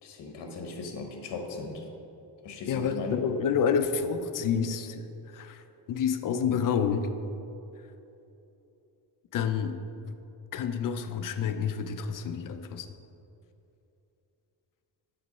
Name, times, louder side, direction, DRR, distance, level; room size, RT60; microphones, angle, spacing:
voice 1, 0.0-1.8 2.4-3.2, left 4 dB, 70° left, 3 dB, 0.9 m, -37 dB
voice 2, 2.7-5.6 5.9-7.1 9.3-9.8 10.5-12.9, left 7 dB, 50° left, 9 dB, 0.5 m, -29 dB
7.7 x 3.1 x 5.3 m, 2.8 s
cardioid pair, 110°, 43 cm